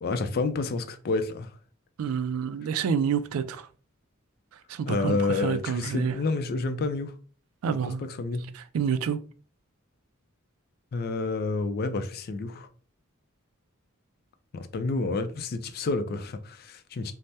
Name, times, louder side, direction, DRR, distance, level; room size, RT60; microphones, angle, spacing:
voice 1, 0.0-1.5 4.8-7.1 8.2-8.4 10.9-12.7 14.5-17.1, left 3 dB, 50° left, 0.4 m, -29 dB
voice 2, 2.0-3.7 4.7-6.2 7.6-8.0 8.5-9.2, right 7 dB, 85° right, 0.3 m, -28 dB
2.7 x 2.0 x 3.3 m
head